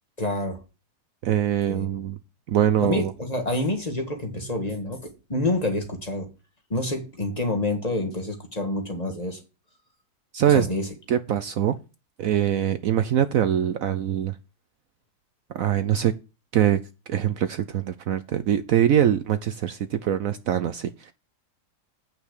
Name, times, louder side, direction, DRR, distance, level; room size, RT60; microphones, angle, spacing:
voice 1, 0.2-0.6 1.7-1.9 2.8-5.0 5.3-6.3 6.7-9.4 10.5-10.9, left 2 dB, 25° left, 1.7 m, -27 dB
voice 2, 1.2-2.2 2.5-3.1 10.3-10.7 11.1-11.8 12.2-14.4 15.5-16.1 16.5-16.8 17.1-21.1, right 10 dB, 65° right, 0.9 m, -23 dB
8.8 x 5.7 x 6.5 m
omnidirectional pair, 1.7 m